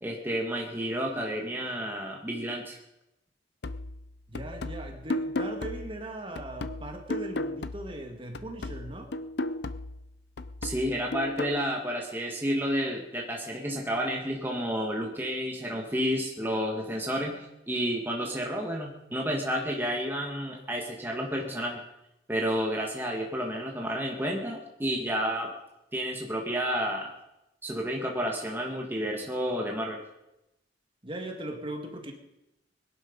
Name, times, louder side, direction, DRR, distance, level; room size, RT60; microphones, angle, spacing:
voice 1, 0.0-2.8 10.6-21.8 22.3-25.5 25.9-27.1 27.6-30.0, equal, 10° right, 0 dB, 1.7 m, -31 dB
sound 1, 3.6-8.1 8.3-11.6, left 2 dB, 60° left, 0.6 m, -35 dB
voice 2, 4.3-9.1 31.0-32.1, right 1 dB, 30° right, 3 dB, 2.0 m, -39 dB
21.5 x 11.5 x 5.3 m, 0.90 s
head